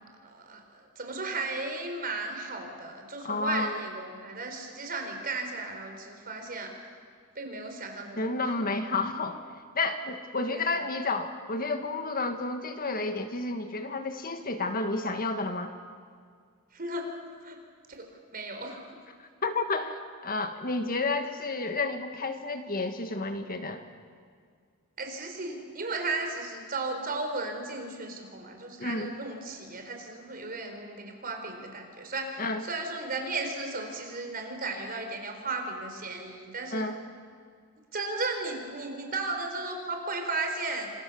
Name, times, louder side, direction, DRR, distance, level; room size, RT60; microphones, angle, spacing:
voice 1, 0.2-6.7 7.3-8.3 10.5-10.9 16.7-17.1 17.4-17.6 17.9-18.1 18.3-18.8 25.0-36.8 37.9-40.9, right 3 dB, 40° right, 4 dB, 4.4 m, -35 dB
voice 2, 3.2-3.8 8.2-9.4 9.7-15.7 19.2-23.8 28.8-29.1 32.4-32.6 36.7-37.0, left 3 dB, 40° left, 6 dB, 1.7 m, -31 dB
28.0 x 26.5 x 7.0 m, 2.1 s
head